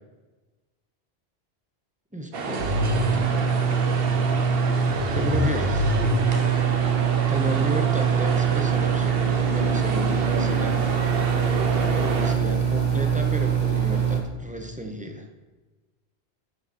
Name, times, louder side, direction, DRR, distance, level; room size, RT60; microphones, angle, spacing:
voice 1, 2.1-3.6 5.1-5.8 7.3-10.9 11.8-15.3, equal, 10° right, 3 dB, 0.8 m, -33 dB
sound 1, 2.3-12.4, right 4 dB, 65° right, 1.0 m, -29 dB
sound 2, 2.6-14.2, right 6 dB, 45° right, 1.4 m, -23 dB
7.8 x 6.7 x 4.3 m, 1.2 s
omnidirectional pair, 1.1 m